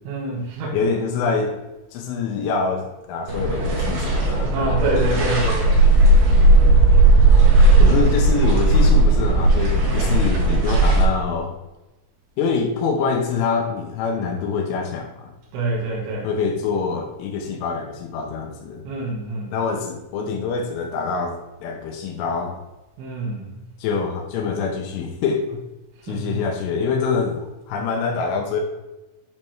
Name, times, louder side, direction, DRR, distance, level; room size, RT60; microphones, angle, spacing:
voice 1, 0.1-0.9 4.5-5.8 15.5-16.3 18.8-19.5 23.0-23.6 26.1-26.4, right 2 dB, 80° right, -5 dB, 3.9 m, -26 dB
voice 2, 0.7-1.6 1.9-4.5 7.8-11.5 12.4-15.3 16.2-18.8 19.5-22.6 23.8-25.6 26.0-28.6, left 5 dB, 85° left, 1 dB, 3.3 m, -25 dB
sound 1, 3.3-11.0, right 2 dB, 60° right, 4.5 m, -15 dB
9.3 x 5.3 x 3.5 m, 1.0 s
omnidirectional pair, 5.6 m